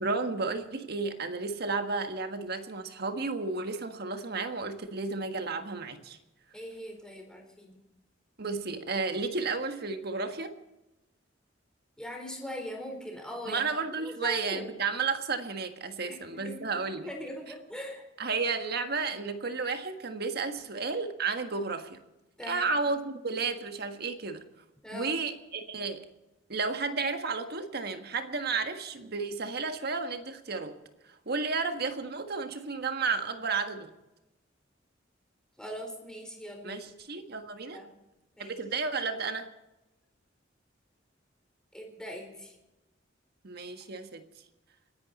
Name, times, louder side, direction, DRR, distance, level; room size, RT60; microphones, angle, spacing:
voice 1, 0.0-6.2 8.4-10.5 13.5-17.1 18.2-22.0 22.5-24.4 24.9-26.0 26.5-30.8 31.3-33.9 36.6-37.8 38.4-39.5 43.4-44.2, right 4 dB, 60° right, 7 dB, 1.6 m, -32 dB
voice 2, 6.5-7.8 12.0-14.7 16.1-16.7 17.0-18.0 22.4-22.7 24.8-25.2 35.6-36.8 37.7-37.9 38.4-38.6 41.7-42.6, equal, 5° left, 2 dB, 4.1 m, -41 dB
29.5 x 11.0 x 4.2 m, 0.98 s
head